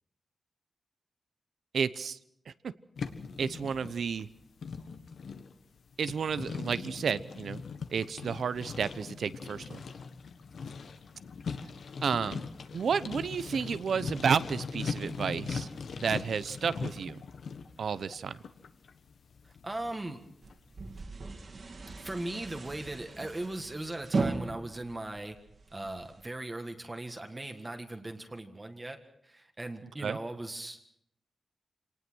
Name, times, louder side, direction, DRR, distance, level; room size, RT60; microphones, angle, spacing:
voice 1, 1.7-2.2 2.5-2.6 3.4-4.3 6.0-7.6 7.9-9.8 12.0-12.4 12.7-15.7 16.0-17.2 17.8-18.4 30.0-30.2, right 6 dB, 75° right, 15 dB, 0.8 m, -31 dB
sound 1, 3.0-20.6, left 5 dB, 80° left, 1.5 m, -41 dB
voice 2, 19.4-20.2 22.0-25.4 25.7-30.8, right 2 dB, 20° right, 5 dB, 1.7 m, -39 dB
sound 2, 20.4-26.2, right 3 dB, 50° right, 2.8 m, -37 dB
26.5 x 19.0 x 6.3 m, 0.73 s
wide cardioid pair, 125°, 0 cm